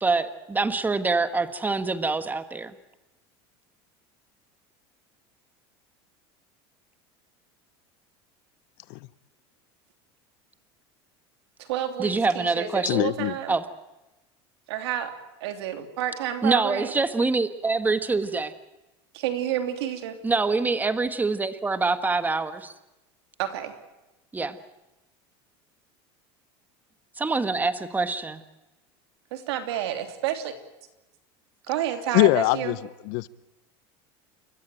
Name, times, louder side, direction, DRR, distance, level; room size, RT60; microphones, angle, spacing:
voice 1, 0.0-2.7 12.0-13.0 13.5-13.6 16.4-18.5 20.2-22.7 24.3-24.6 27.2-28.4, right 3 dB, 15° right, 1.5 m, -25 dB
voice 2, 11.6-13.5 14.7-15.1 15.4-16.9 19.1-20.2 23.4-23.7 29.3-30.5 31.7-32.7, right 11 dB, 85° right, 3.1 m, -29 dB
voice 3, 12.9-13.3 32.1-32.7 33.1-33.3, left 21 dB, 70° left, 0.8 m, -22 dB
30.0 x 14.5 x 9.2 m
supercardioid pair, 115°, 13 cm